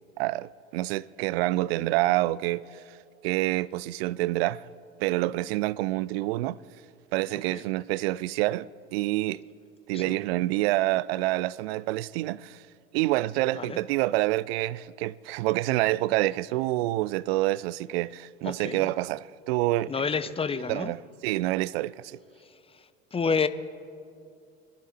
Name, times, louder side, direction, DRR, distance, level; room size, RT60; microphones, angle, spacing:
voice 1, 0.2-2.6 3.2-4.6 5.0-6.6 7.1-9.4 9.9-12.6 12.9-19.9 20.7-22.2, right 17 dB, 60° right, 0.5 m, -27 dB
voice 2, 18.4-18.9 19.9-20.9 22.7-23.5, left 5 dB, 15° left, 0.7 m, -30 dB
26.0 x 11.5 x 4.3 m
figure-of-eight pair, 65°, 34 cm